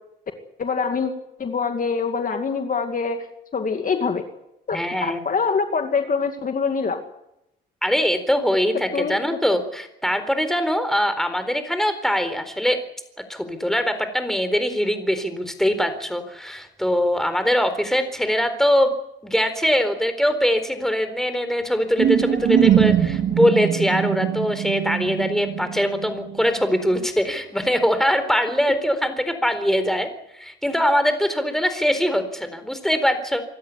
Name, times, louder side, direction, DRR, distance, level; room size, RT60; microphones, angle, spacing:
voice 1, 0.6-1.1 1.4-3.2 3.5-4.2 4.7-7.0 8.9-9.2, left 5 dB, 45° left, 6 dB, 2.4 m, -24 dB
voice 2, 4.7-5.3 7.8-12.8 13.3-18.9 19.2-33.4, equal, ahead, 9 dB, 4.1 m, -22 dB
sound 1, 22.0-26.5, right 10 dB, 70° right, 2.9 m, -22 dB
25.0 x 13.5 x 9.7 m, 0.82 s
cardioid pair, 90°, 20 cm